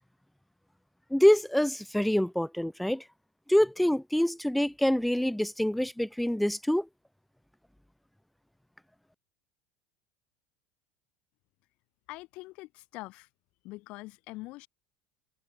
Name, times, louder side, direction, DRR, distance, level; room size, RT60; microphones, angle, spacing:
voice 1, 1.1-3.0 3.5-6.9, left 1 dB, 5° left, 1.9 m, -25 dB
voice 2, 12.1-13.3 13.6-14.7, left 21 dB, 65° left, 5.1 m, -43 dB
supercardioid pair, 105°, 2 cm